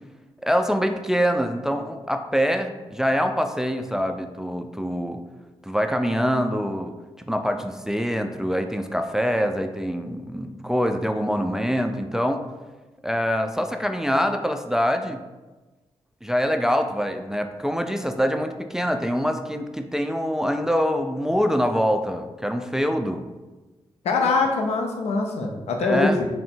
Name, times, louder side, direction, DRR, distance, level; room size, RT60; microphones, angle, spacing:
voice 1, 0.4-5.2 5.6-6.9 7.3-12.4 13.0-15.2 16.2-23.2 25.8-26.2, equal, 5° right, 6 dB, 0.3 m, -24 dB
voice 2, 24.0-26.3, left 3 dB, 80° left, 3 dB, 0.6 m, -23 dB
3.6 x 2.1 x 4.3 m, 1.2 s
supercardioid pair, 50°, 11 cm